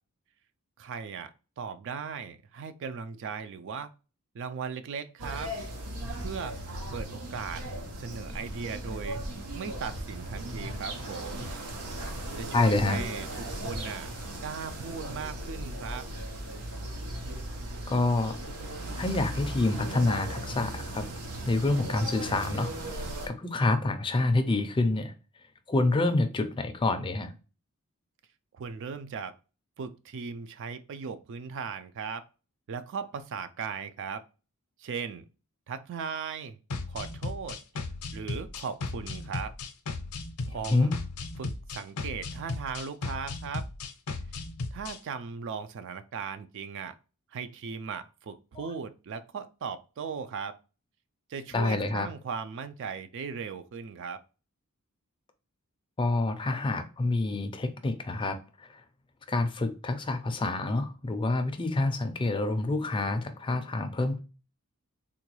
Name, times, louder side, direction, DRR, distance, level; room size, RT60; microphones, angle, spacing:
voice 1, 0.8-3.9 4.3-5.5 6.2-6.6 6.9-7.7 8.0-9.2 9.5-11.5 12.3-14.1 14.4-16.1 28.5-29.4 29.8-32.2 32.7-34.2 34.8-35.3 35.7-36.6 36.9-37.6 38.1-39.5 40.5-40.9 41.4-43.6 44.7-46.9 47.3-50.6 51.3-54.2, right 6 dB, 55° right, 0.3 m, -38 dB
sound 1, 5.2-23.3, right 1 dB, 90° right, 0.8 m, -38 dB
Breathing, 5.9-6.3 6.7-7.0 7.4-7.8 8.2-8.5 8.9-9.3 9.7-10.0 10.4-10.8 11.2-11.5 11.9-12.3 12.7-13.0 13.4-13.8, equal, 30° right, 0.8 m, -41 dB
voice 2, 12.5-13.0 17.9-18.3 19.0-21.1 21.5-25.1 25.7-27.3 40.7-40.9 48.6-48.7 51.5-52.1 56.0-58.8 59.3-64.2, left 2 dB, 20° left, 0.4 m, -27 dB
sound 2, 36.7-45.0, left 3 dB, 85° left, 0.5 m, -36 dB
3.7 x 2.2 x 2.9 m
head